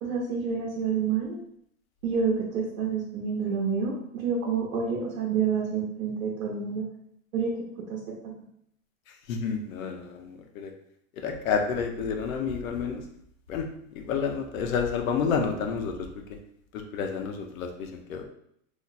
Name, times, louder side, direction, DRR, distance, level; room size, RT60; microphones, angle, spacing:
voice 1, 0.0-1.4 2.0-6.8 7.3-7.5 7.9-8.3, right 6 dB, 80° right, -2 dB, 0.9 m, -28 dB
voice 2, 9.3-10.7 11.2-13.0 13.5-13.7 13.9-16.1 16.7-18.2, left 6 dB, 80° left, 3 dB, 0.8 m, -29 dB
3.0 x 2.2 x 3.9 m, 0.71 s
supercardioid pair, 170°, 41 cm